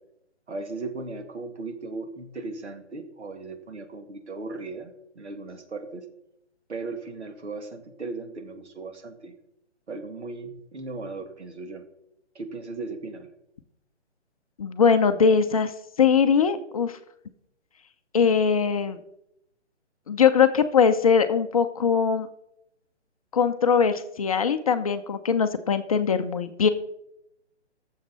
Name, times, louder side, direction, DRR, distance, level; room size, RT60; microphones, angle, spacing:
voice 1, 0.5-6.0 6.7-9.3 9.9-11.8 12.3-13.3, right 3 dB, 70° right, 6 dB, 2.3 m, -37 dB
voice 2, 14.6-15.7 16.0-17.0 18.1-19.0 20.1-22.3 23.3-26.7, left 6 dB, 30° left, 8 dB, 0.6 m, -21 dB
18.0 x 7.3 x 4.1 m, 0.81 s
figure-of-eight pair, 145°, 35 cm